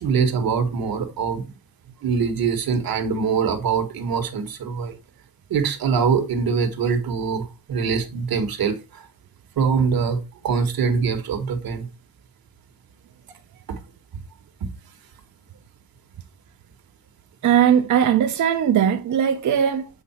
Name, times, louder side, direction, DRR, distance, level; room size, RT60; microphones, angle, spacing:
voice 1, 0.0-1.5 2.0-4.9 5.5-9.1 9.6-11.9 13.7-13.8, right 6 dB, 85° right, 1.5 m, -23 dB
voice 2, 17.4-19.9, right 9 dB, 60° right, 0.6 m, -19 dB
8.0 x 4.7 x 4.3 m
wide cardioid pair, 170°, 35 cm